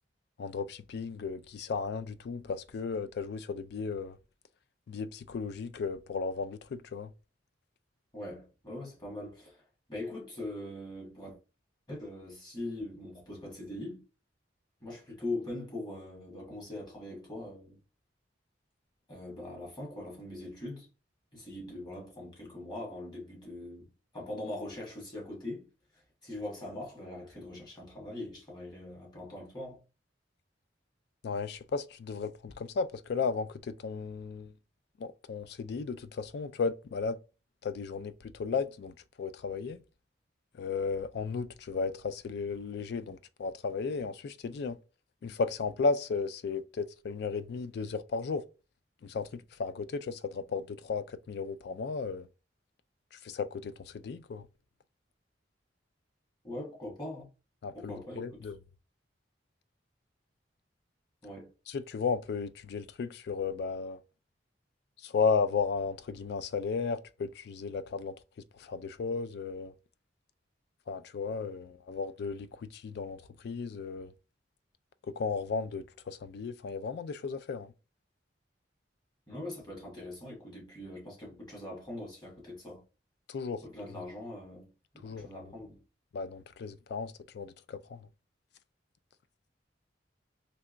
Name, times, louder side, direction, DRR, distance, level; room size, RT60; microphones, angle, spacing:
voice 1, 0.4-4.2 4.9-7.1 31.2-34.5 35.0-37.2 37.6-39.8 40.6-44.8 45.2-48.4 49.0-52.3 53.2-54.4 57.6-58.6 61.7-64.0 65.0-68.1 68.6-69.7 70.9-74.1 75.1-77.7 83.3-83.6 85.0-85.4 86.1-88.1, left 5 dB, 60° left, 0.3 m, -34 dB
voice 2, 8.1-9.6 9.9-11.4 11.9-14.0 14.8-17.8 19.1-20.9 21.3-25.7 26.2-29.8 56.4-57.3 57.7-58.5 61.2-61.5 79.3-82.8 83.6-85.8, left 1 dB, 25° left, 1.4 m, -42 dB
3.3 x 2.8 x 2.5 m
head